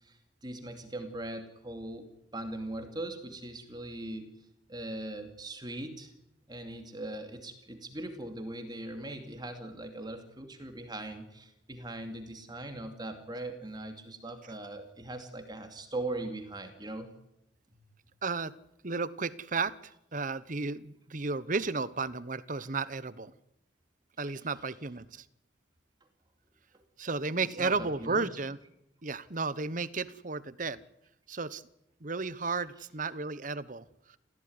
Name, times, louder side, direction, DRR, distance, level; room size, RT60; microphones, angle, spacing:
voice 1, 0.0-4.3 4.7-6.1 6.5-17.1 24.2-24.3 27.5-28.3, right 1 dB, 25° right, 5 dB, 2.6 m, -40 dB
voice 2, 18.2-18.5 18.8-23.3 24.2-25.2 27.0-28.6 29.0-30.8 31.3-31.6 32.0-34.2, right 4 dB, 45° right, 16 dB, 1.0 m, -33 dB
28.0 x 15.5 x 9.7 m, 0.83 s
head